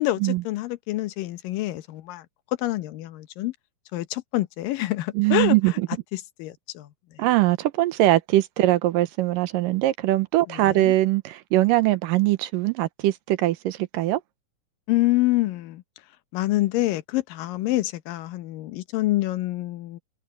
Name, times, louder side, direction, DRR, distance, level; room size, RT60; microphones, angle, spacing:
voice 1, 0.0-2.3 2.6-3.5 3.9-5.6 6.1-6.9 10.5-10.9 14.9-15.8 16.3-20.0, left 17 dB, 90° left, 2.7 m, -26 dB
voice 2, 5.1-5.9 7.2-14.2, right 16 dB, 85° right, 2.6 m, -22 dB
omnidirectional pair, 3.9 m